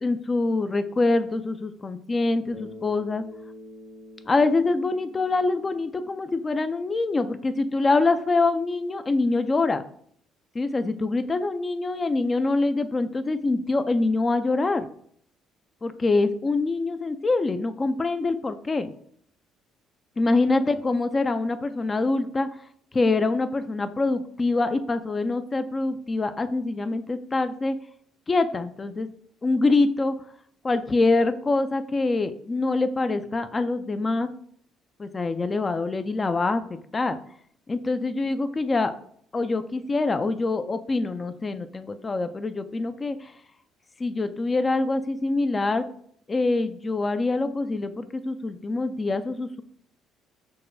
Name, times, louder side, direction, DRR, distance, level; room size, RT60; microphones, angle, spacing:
voice 1, 0.0-3.2 4.3-9.8 10.5-14.9 15.8-18.9 20.2-22.5 22.9-27.8 28.3-29.1 29.4-30.2 30.6-34.3 35.0-37.2 37.7-38.9 39.3-43.3 44.0-45.9 46.3-49.6, left 3 dB, 30° left, 10 dB, 0.4 m, -25 dB
Bass guitar, 2.5-6.9, left 2 dB, 65° left, 0.6 m, -46 dB
6.2 x 2.2 x 2.6 m, 0.62 s
hypercardioid pair, 60°, 0 cm